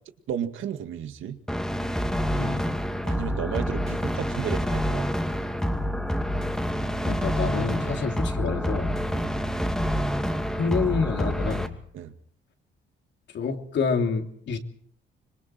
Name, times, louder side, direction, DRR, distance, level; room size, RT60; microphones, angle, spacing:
voice 1, 0.3-1.4 3.1-5.1 9.1-9.3 11.9-12.1, right 9 dB, 80° right, 8 dB, 2.0 m, -33 dB
sound 1, 1.5-11.7, equal, 5° left, 2.4 m, -27 dB
voice 2, 7.1-8.9 10.5-11.7 13.3-14.6, left 5 dB, 65° left, 4 dB, 3.1 m, -28 dB
26.0 x 22.0 x 4.5 m, 0.63 s
cardioid pair, 90°, 20 cm